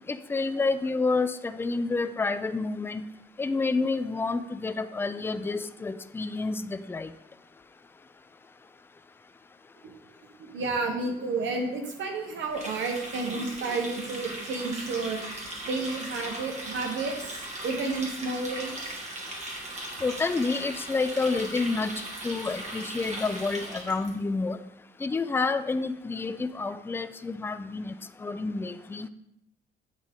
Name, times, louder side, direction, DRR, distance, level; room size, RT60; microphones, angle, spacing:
voice 1, 0.1-3.1 3.4-7.1 20.0-21.9 22.2-24.6 25.0-27.9 28.2-29.1, left 3 dB, 10° left, 11 dB, 0.4 m, -29 dB
voice 2, 10.4-15.2 15.6-19.9, right 3 dB, 75° right, 2 dB, 1.2 m, -32 dB
Water tap faucet, 12.5-24.1, right 1 dB, 35° right, 1.9 m, -38 dB
9.0 x 3.7 x 3.6 m, 0.83 s
cardioid pair, 90°, 20 cm